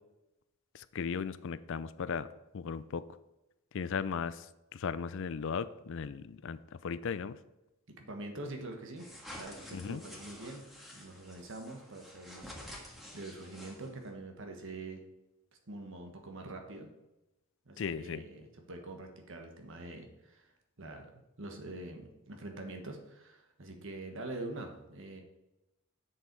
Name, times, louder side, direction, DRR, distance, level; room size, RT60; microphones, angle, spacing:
voice 1, 0.7-2.3 2.5-3.0 3.7-4.4 4.7-7.4 9.7-10.0 17.8-18.2, left 6 dB, 65° left, 15 dB, 0.4 m, -36 dB
voice 2, 8.0-9.1 9.3-10.6 10.9-12.5 13.1-15.0 15.7-16.9 17.6-20.5 20.8-25.2, right 2 dB, 65° right, 4 dB, 1.4 m, -44 dB
sound 1, 9.0-14.1, left 1 dB, ahead, 1.7 m, -49 dB
7.4 x 6.8 x 4.6 m, 0.96 s
head